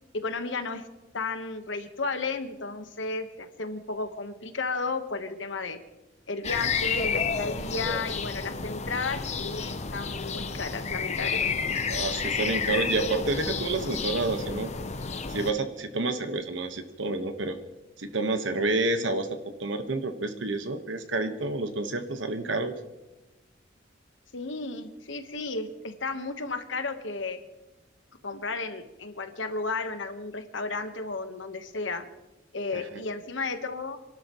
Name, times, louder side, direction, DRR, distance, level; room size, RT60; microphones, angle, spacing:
voice 1, 0.1-0.9 1.1-5.8 6.3-11.6 24.3-27.4 28.2-32.0 32.5-34.0, left 3 dB, 70° left, 8 dB, 1.2 m, -33 dB
sound 1, 6.4-15.5, left 5 dB, 35° left, 0.8 m, -30 dB
voice 2, 11.9-14.7 15.3-17.6 18.0-22.7 32.7-32.8, right 3 dB, 75° right, 8 dB, 1.3 m, -29 dB
27.0 x 12.0 x 3.1 m, 1.0 s
head